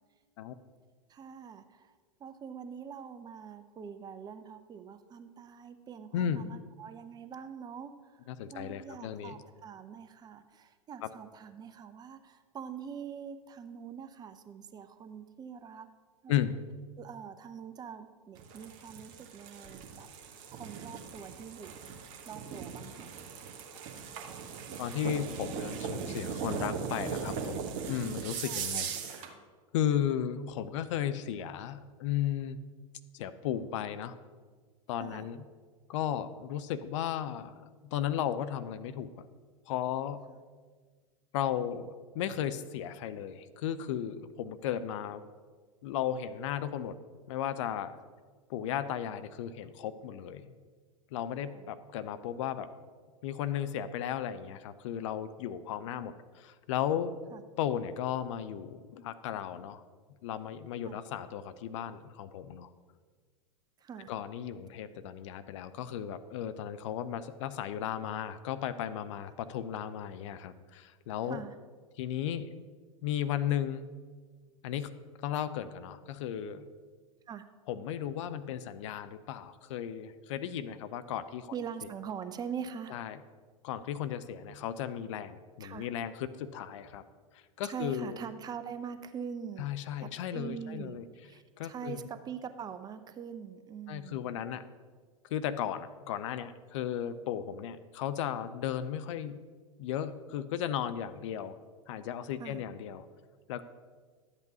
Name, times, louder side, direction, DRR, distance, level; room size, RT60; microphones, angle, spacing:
voice 1, 1.1-15.9 16.2-16.6 17.0-20.1 20.5-21.9 22.3-23.1 28.4-28.7 35.0-35.3 40.3-40.4 51.4-51.7 57.3-57.4 60.8-61.0 63.8-64.1 71.2-71.5 77.3-77.4 81.5-83.0 85.6-85.9 87.6-94.4 102.4-102.6, right 7 dB, 20° right, 10 dB, 0.5 m, -44 dB
voice 2, 6.1-6.4 8.3-9.3 11.0-11.1 16.3-16.6 24.8-28.9 29.7-32.6 33.1-34.2 34.9-35.4 35.9-39.3 39.7-40.2 41.3-45.2 45.8-47.0 47.3-47.9 48.5-50.6 51.1-52.7 53.2-57.1 57.6-59.8 60.2-62.7 64.1-71.4 72.0-72.5 73.0-73.9 74.6-74.9 75.2-76.6 77.7-81.5 82.9-83.2 83.6-87.0 87.3-88.2 89.6-91.0 91.6-92.0 93.9-94.6 95.3-99.4 99.8-101.5 101.9-103.1 103.5-103.6, left 10 dB, 55° left, 13 dB, 0.5 m, -35 dB
sound 1, 18.4-29.3, right 6 dB, 40° right, 1.1 m, -39 dB
12.0 x 8.1 x 2.7 m, 1.5 s
hypercardioid pair, 95°, 19 cm